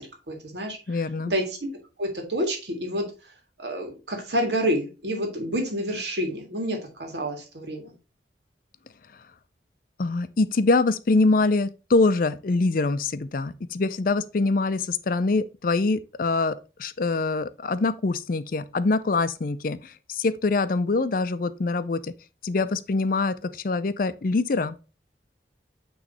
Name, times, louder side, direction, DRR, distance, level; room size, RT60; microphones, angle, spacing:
voice 1, 0.0-0.8 1.3-1.7 2.0-3.1 3.6-7.9, equal, 75° right, 1.9 m, -28 dB
voice 2, 0.9-1.3 10.0-22.1 22.4-24.8, left 3 dB, 50° left, 0.5 m, -24 dB
8.7 x 3.2 x 4.1 m
head